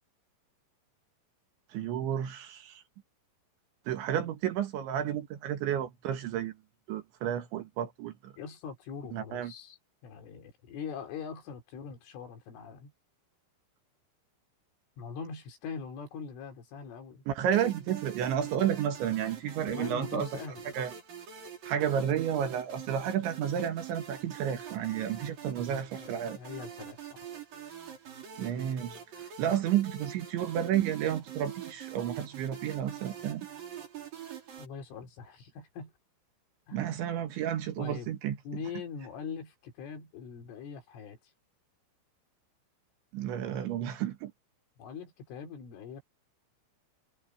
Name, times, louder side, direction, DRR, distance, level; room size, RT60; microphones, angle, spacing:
voice 1, 1.7-2.8 3.9-6.5 6.9-8.3 9.1-9.5 17.3-20.3 20.8-20.9 21.7-26.4 28.4-33.5 36.7-38.4 43.1-44.3, right 10 dB, 70° right, 3.8 m, -31 dB
voice 2, 8.4-12.9 15.0-17.3 19.7-20.6 25.9-27.2 34.6-35.9 36.7-36.9 37.8-38.1 38.5-41.2 44.8-46.0, left 6 dB, 75° left, 6.0 m, -42 dB
sound 1, 17.5-34.7, right 9 dB, 45° right, 5.5 m, -44 dB
omnidirectional pair, 5.7 m